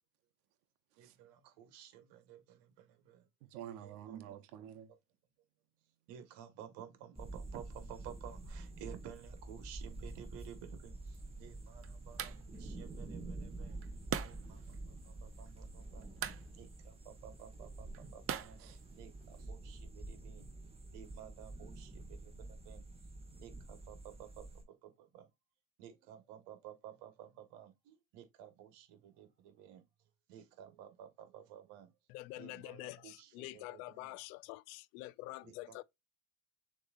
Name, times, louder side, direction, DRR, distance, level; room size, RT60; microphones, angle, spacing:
voice 1, 1.0-3.3 3.8-4.2 6.1-13.8 14.2-16.1 16.5-20.5 20.9-22.8 23.4-25.3 25.8-29.8 30.3-31.9 32.4-34.2 35.4-35.8, right 10 dB, 65° right, 1.6 m, -54 dB
voice 2, 3.4-4.9 18.6-18.8, right 10 dB, 85° right, 0.9 m, -48 dB
sound 1, 7.1-24.6, right 2 dB, 15° right, 1.4 m, -48 dB
sound 2, 11.0-19.5, right 9 dB, 30° right, 0.7 m, -46 dB
voice 3, 32.1-35.8, left 19 dB, 75° left, 0.5 m, -47 dB
6.6 x 3.1 x 2.5 m
supercardioid pair, 105°, 44 cm